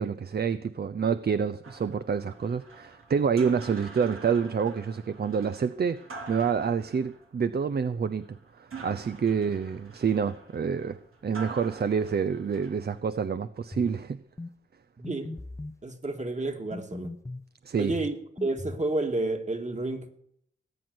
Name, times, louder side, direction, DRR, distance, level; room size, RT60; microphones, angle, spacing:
voice 1, 0.0-6.0 6.3-14.2 17.6-18.0, right 6 dB, 50° right, 0.7 m, -28 dB
sound 1, 1.6-13.0, right 4 dB, 85° right, 3.0 m, -46 dB
sound 2, 13.7-14.0 14.4-14.5 15.0-15.8 16.7-17.5 17.9-18.9, left 2 dB, 15° left, 0.6 m, -39 dB
voice 2, 15.0-15.4 15.8-17.1 17.8-20.2, right 2 dB, 35° right, 2.4 m, -30 dB
18.5 x 6.2 x 9.5 m
cardioid pair, 70°, 21 cm